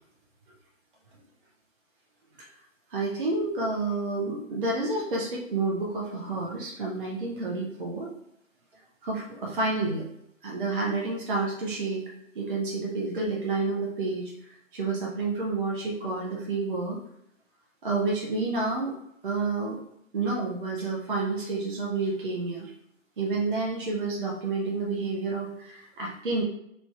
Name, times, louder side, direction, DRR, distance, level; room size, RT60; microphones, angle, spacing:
voice 1, 2.9-8.1 9.0-10.0 10.4-17.0 17.8-19.0 19.2-19.8 20.1-22.7 23.2-26.4, right 3 dB, 40° right, -2 dB, 0.6 m, -29 dB
3.1 x 2.6 x 4.3 m, 0.78 s
figure-of-eight pair, 140°, 40 cm